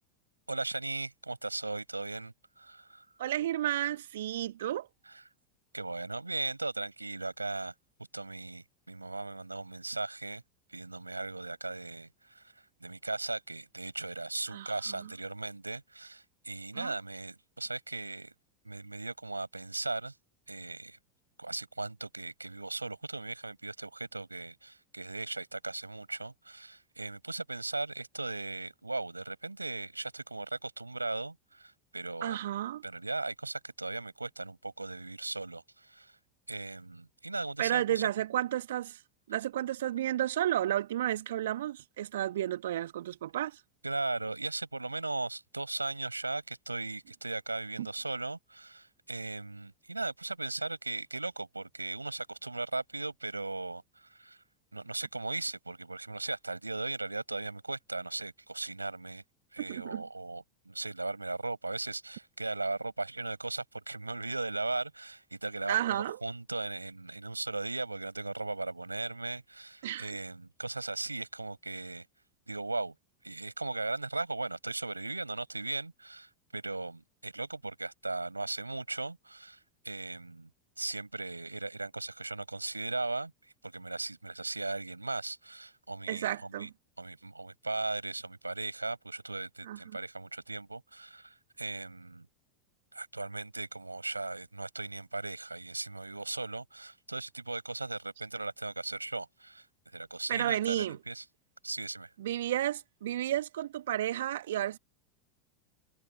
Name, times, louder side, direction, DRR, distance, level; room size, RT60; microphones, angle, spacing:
voice 1, 0.5-3.0 5.7-7.7 8.1-10.4 10.7-18.3 18.6-20.1 20.5-21.0 21.4-32.4 32.8-36.1 36.5-38.0 43.8-54.4 54.7-59.2 59.5-72.1 72.5-72.9 73.2-80.5 80.8-86.7 87.0-92.3 92.9-99.7 99.9-101.2 101.6-102.1, right 2 dB, 85° right, 7.1 m, -38 dB
voice 2, 3.2-4.9 14.5-15.1 16.7-16.9 32.2-32.8 37.6-39.0 39.3-43.6 47.8-47.9 59.6-60.0 65.7-66.2 69.8-70.2 86.1-86.7 89.6-90.0 100.3-101.0 102.2-104.8, right 12 dB, 65° right, 1.9 m, -32 dB
figure-of-eight pair, 85°, 0 cm